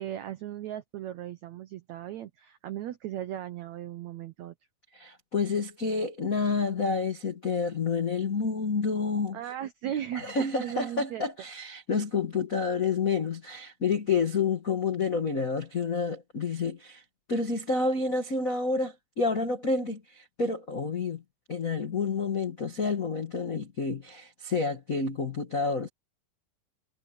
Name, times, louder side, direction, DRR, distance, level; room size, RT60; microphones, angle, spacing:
voice 1, 0.0-4.5 9.3-11.2, right 11 dB, 85° right, 1.6 m, -37 dB
voice 2, 4.9-9.4 10.1-17.0 17.3-21.2 21.5-25.9, left 4 dB, 80° left, 0.7 m, -29 dB
omnidirectional pair, 4.5 m